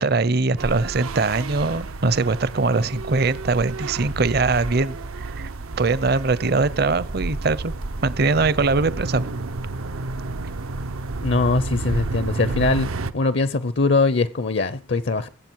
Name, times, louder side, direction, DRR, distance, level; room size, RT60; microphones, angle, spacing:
voice 1, 0.0-5.0 5.4-5.5 5.8-7.7 8.0-9.2, right 3 dB, 50° right, 0.7 m, -21 dB
sound 1, 0.6-13.1, right 3 dB, 85° right, 0.8 m, -31 dB
voice 2, 11.2-12.9 13.1-15.3, left 3 dB, 55° left, 0.6 m, -21 dB
22.5 x 8.0 x 4.6 m
head